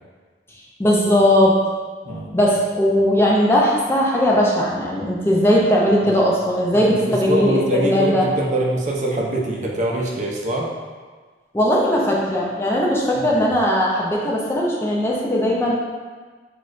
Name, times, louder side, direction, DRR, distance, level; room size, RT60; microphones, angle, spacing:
voice 1, 0.8-1.6 2.3-8.3 11.5-15.7, equal, 15° left, -4 dB, 0.5 m, -18 dB
voice 2, 2.0-2.4 6.0-6.2 6.7-10.7 13.2-13.4, right 1 dB, 45° right, -2 dB, 0.6 m, -24 dB
6.1 x 2.4 x 2.5 m, 1.5 s
head